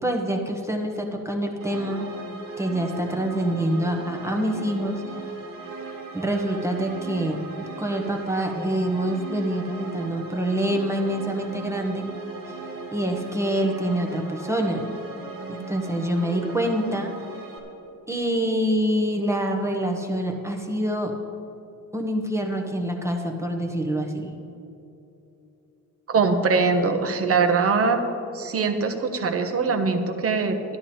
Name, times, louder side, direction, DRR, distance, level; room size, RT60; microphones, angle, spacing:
voice 1, 0.0-2.1 2.6-5.0 6.1-12.0 12.9-14.9 15.5-17.1 18.1-21.1 21.9-24.3, right 1 dB, 10° right, 1 dB, 1.0 m, -26 dB
sound 1, 1.6-17.6, right 3 dB, 90° right, 1.6 m, -38 dB
voice 2, 26.1-28.0 28.3-30.8, right 4 dB, 45° right, 6 dB, 1.1 m, -22 dB
11.5 x 11.5 x 4.3 m, 2.8 s
cardioid pair, 130°, 33 cm